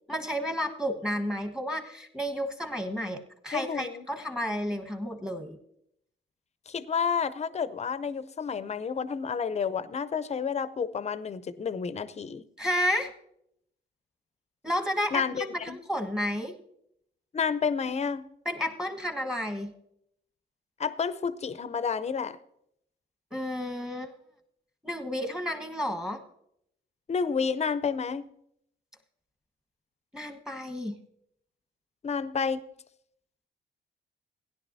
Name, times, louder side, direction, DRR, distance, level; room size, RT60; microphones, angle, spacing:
voice 1, 0.1-5.6 12.6-13.1 14.6-16.6 18.4-19.7 23.3-24.1 24.8-26.2 30.1-31.0, equal, 5° right, 5 dB, 1.3 m, -31 dB
voice 2, 3.5-4.1 6.7-12.4 15.1-15.8 17.3-18.2 20.8-22.4 27.1-28.2 32.0-32.6, left 6 dB, 35° left, 14 dB, 0.5 m, -30 dB
16.5 x 10.5 x 2.7 m, 0.74 s
cardioid pair, 90°, 20 cm